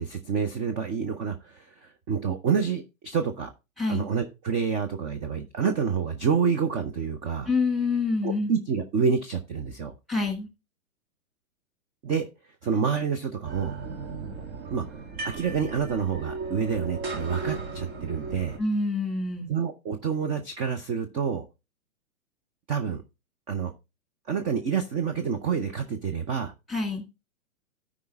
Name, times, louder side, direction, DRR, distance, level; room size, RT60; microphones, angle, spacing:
voice 1, 0.0-3.5 3.9-7.5 8.2-9.9 12.0-12.3 12.6-13.7 14.7-14.8 15.2-18.6 19.5-21.4 22.7-23.0 23.5-23.7 24.3-26.5, right 6 dB, 20° right, 8 dB, 0.5 m, -28 dB
voice 2, 7.5-8.5 10.1-10.5 18.6-19.5 26.7-27.0, left 3 dB, ahead, 5 dB, 1.9 m, -26 dB
sound 1, 13.4-18.6, right 4 dB, 50° right, 2.6 m, -36 dB
13.0 x 4.9 x 3.4 m, 0.26 s
hypercardioid pair, 130°, 41 cm